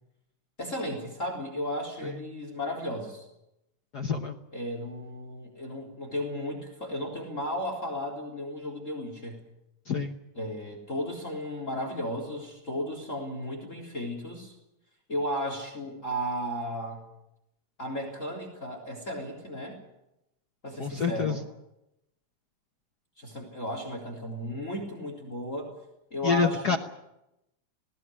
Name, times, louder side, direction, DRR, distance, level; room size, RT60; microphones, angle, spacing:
voice 1, 0.6-3.3 4.5-9.4 10.4-14.5 15.1-17.0 17.8-19.8 20.6-21.4 23.2-25.7 26.1-26.8, equal, 25° left, 3 dB, 3.9 m, -34 dB
voice 2, 3.9-4.4 9.9-10.2 20.8-21.4 26.2-26.8, left 5 dB, 70° left, 4 dB, 0.9 m, -27 dB
20.0 x 18.0 x 10.0 m, 0.88 s
omnidirectional pair, 3.4 m